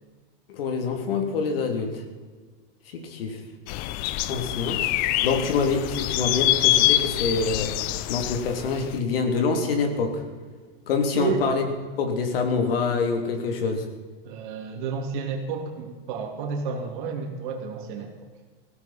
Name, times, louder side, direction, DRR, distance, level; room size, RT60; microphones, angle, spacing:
voice 1, 0.5-2.0 2.9-3.4 4.3-4.8 5.2-7.7 8.1-10.2 10.9-11.6 12.0-13.9, left 4 dB, 75° left, 4 dB, 3.2 m, -25 dB
sound 1, 3.7-8.9, left 15 dB, 30° left, 0.5 m, -25 dB
voice 2, 11.1-11.4 14.2-18.1, right 6 dB, 55° right, 2 dB, 2.8 m, -31 dB
16.5 x 16.5 x 4.4 m, 1.4 s
supercardioid pair, 150°, 29 cm